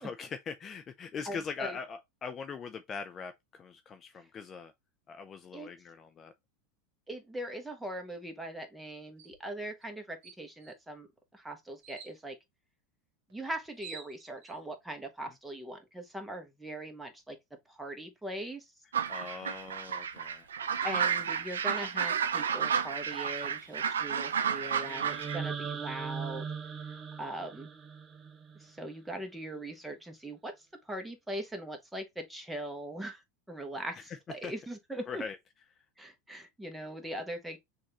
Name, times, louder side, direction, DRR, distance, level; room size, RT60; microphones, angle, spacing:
voice 1, 0.0-4.7 5.1-6.3 19.1-20.5 33.9-34.2 34.4-34.5 35.1-35.4, left 5 dB, 30° left, 0.5 m, -41 dB
voice 2, 1.3-1.7 5.5-5.7 7.1-11.1 11.3-12.4 13.3-17.4 17.7-18.6 20.8-26.4 27.2-27.7 28.6-33.2 33.5-35.2 36.0-37.6, right 1 dB, 5° right, 1.3 m, -40 dB
sound 1, 9.2-9.4 9.8-9.9 10.2-10.8 11.8-12.1 13.3-13.4 13.6-14.5, right 7 dB, 60° right, 1.1 m, -49 dB
sound 2, 18.9-25.4, right 7 dB, 80° right, 0.5 m, -31 dB
sound 3, 24.8-28.9, right 6 dB, 30° right, 0.7 m, -39 dB
6.2 x 2.7 x 2.9 m
hypercardioid pair, 90°, 0 cm